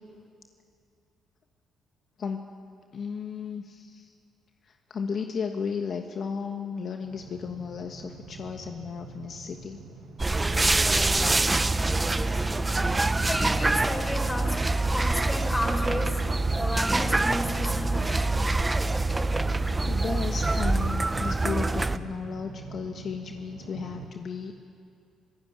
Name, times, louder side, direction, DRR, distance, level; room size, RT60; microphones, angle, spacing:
voice 1, 2.9-4.1 4.6-9.8 19.5-24.7, left 6 dB, 55° left, 4 dB, 1.4 m, -34 dB
sound 1, 7.0-24.1, right 4 dB, 85° right, 2.3 m, -44 dB
sound 2, 10.2-22.0, right 2 dB, 20° right, 0.8 m, -25 dB
voice 2, 13.2-16.2 16.5-18.5, left 1 dB, 15° left, 4 dB, 4.4 m, -33 dB
26.5 x 16.0 x 9.6 m, 2.4 s
cardioid pair, 90°, 0 cm